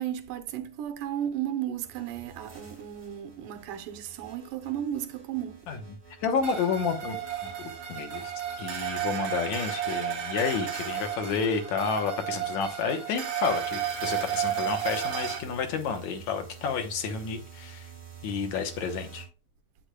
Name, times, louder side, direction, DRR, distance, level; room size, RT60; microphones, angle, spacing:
voice 1, 0.0-5.6, right 10 dB, 85° right, 2.4 m, -34 dB
sound 1, 1.8-11.1 12.6-19.3, right 5 dB, 15° right, 4.7 m, -49 dB
voice 2, 6.2-7.2 7.4-7.5 7.9-8.3 8.6-17.9 18.2-19.3, left 6 dB, 70° left, 2.1 m, -30 dB
sound 2, 6.4-15.4, right 10 dB, 55° right, 2.3 m, -33 dB
10.0 x 8.6 x 2.3 m
omnidirectional pair, 3.6 m